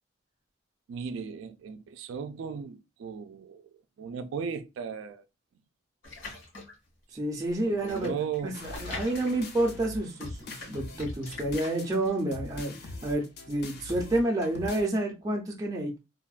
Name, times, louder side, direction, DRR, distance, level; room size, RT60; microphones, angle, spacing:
voice 1, 0.9-5.3 7.3-8.6, right 6 dB, 85° right, 0.3 m, -37 dB
sound 1, 6.0-6.9 7.5-9.9 10.1-12.1, left 3 dB, 85° left, 1.6 m, -43 dB
voice 2, 7.1-8.1 8.4-16.0, right 1 dB, 20° right, 0.4 m, -29 dB
sound 2, 8.5-14.8, left 2 dB, 55° left, 0.5 m, -42 dB
3.3 x 2.1 x 2.3 m
head